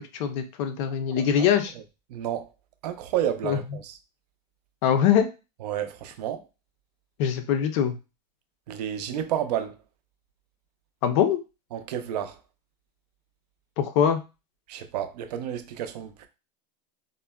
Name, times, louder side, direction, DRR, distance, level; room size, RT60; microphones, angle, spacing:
voice 1, 0.1-1.7 3.4-3.6 4.8-5.3 7.2-8.0 11.0-11.4 13.8-14.2, left 8 dB, 45° left, 0.4 m, -22 dB
voice 2, 1.1-1.5 1.7-1.8 2.1-2.5 2.8-4.0 5.6-6.5 8.7-9.8 11.7-12.4 14.7-16.3, right 10 dB, 75° right, 0.5 m, -31 dB
3.7 x 2.0 x 2.2 m
supercardioid pair, 160°, 21 cm